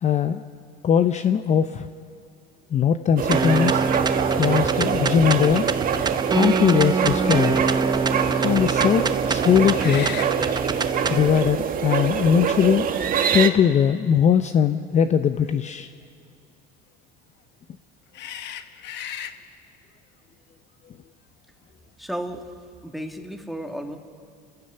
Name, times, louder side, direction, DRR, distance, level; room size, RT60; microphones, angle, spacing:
voice 1, 0.0-0.4 0.8-1.9 2.7-3.8 4.3-5.7 6.3-7.6 8.4-10.1 11.1-12.9 13.3-15.9, left 8 dB, 35° left, 10 dB, 0.7 m, -20 dB
sound 1, 3.2-13.5, right 7 dB, 45° right, 1.5 m, -24 dB
sound 2, 3.3-11.3, right 4 dB, 20° right, 1.0 m, -25 dB
sound 3, 9.7-10.3 11.6-11.7 12.7-13.5 15.4-15.6 18.1-19.4, left 9 dB, 55° left, 1.3 m, -36 dB
voice 2, 22.0-22.5 22.8-24.0, equal, ahead, 3 dB, 2.0 m, -33 dB
29.5 x 15.5 x 6.9 m, 2.2 s
supercardioid pair, 100°, 21 cm